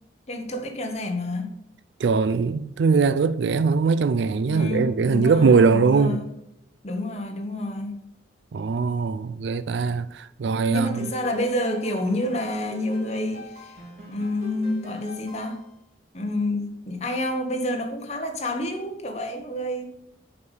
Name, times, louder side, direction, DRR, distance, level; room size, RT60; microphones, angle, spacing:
voice 1, 0.3-1.5 4.5-6.2 6.8-8.0 10.7-13.8 14.1-15.6 16.1-19.9, left 1 dB, 35° left, 1.2 m, -29 dB
voice 2, 2.0-6.2 8.5-11.1, right 4 dB, 70° right, 0.4 m, -21 dB
sound 1, 10.8-15.8, right 1 dB, 45° right, 3.0 m, -43 dB
6.8 x 5.3 x 6.5 m
head